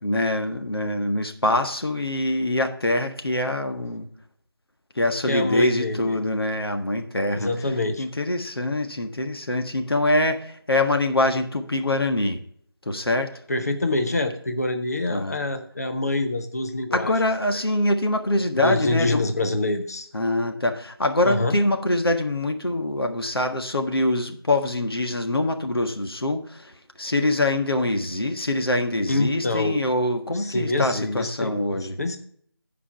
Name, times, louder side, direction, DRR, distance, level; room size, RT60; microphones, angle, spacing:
voice 1, 0.0-4.1 4.9-7.5 8.0-12.4 12.9-13.3 15.1-15.4 16.9-19.2 20.1-32.0, left 1 dB, 70° left, 5 dB, 1.5 m, -24 dB
voice 2, 5.3-6.2 7.4-8.1 13.5-17.1 18.6-20.1 21.2-21.6 29.1-29.8 30.3-32.2, left 2 dB, 40° left, 7 dB, 0.8 m, -26 dB
14.0 x 5.1 x 4.5 m, 0.63 s
figure-of-eight pair, 170°, 13 cm